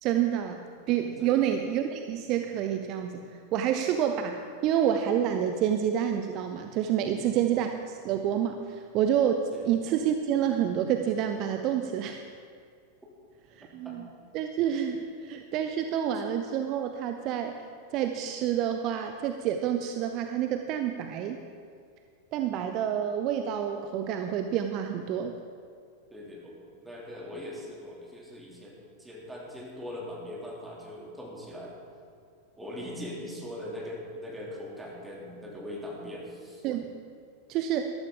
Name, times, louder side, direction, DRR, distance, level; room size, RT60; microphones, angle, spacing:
voice 1, 0.0-12.2 13.6-14.0 14.3-17.6 17.9-21.4 22.3-25.3 36.6-36.9 37.5-37.9, right 9 dB, 40° right, 6 dB, 0.6 m, -28 dB
voice 2, 7.0-7.5 9.5-9.7 13.6-14.0 26.1-31.8 32.6-36.7, left 1 dB, 5° right, -4 dB, 2.9 m, -41 dB
13.0 x 12.5 x 3.8 m, 2.2 s
figure-of-eight pair, 90°, 0 cm